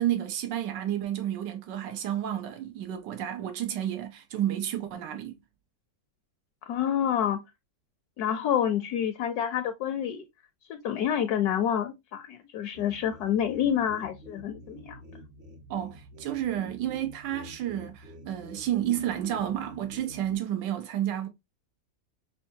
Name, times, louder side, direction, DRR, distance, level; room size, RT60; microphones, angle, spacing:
voice 1, 0.0-5.4 15.7-21.3, right 11 dB, 85° right, 1.4 m, -31 dB
voice 2, 6.7-7.4 8.2-10.3 10.7-15.0, left 9 dB, 70° left, 1.0 m, -28 dB
sound 1, 12.7-20.3, equal, 55° right, 0.7 m, -48 dB
5.6 x 2.3 x 2.7 m
omnidirectional pair, 1.8 m